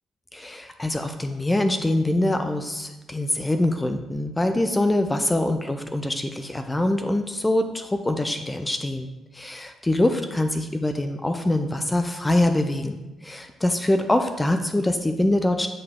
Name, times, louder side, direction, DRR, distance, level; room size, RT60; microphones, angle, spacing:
voice 1, 0.3-9.1 9.3-13.0 13.2-15.7, left 1 dB, 15° left, 7 dB, 0.5 m, -24 dB
7.5 x 4.5 x 3.6 m, 1.0 s
cardioid pair, 90°, 0 cm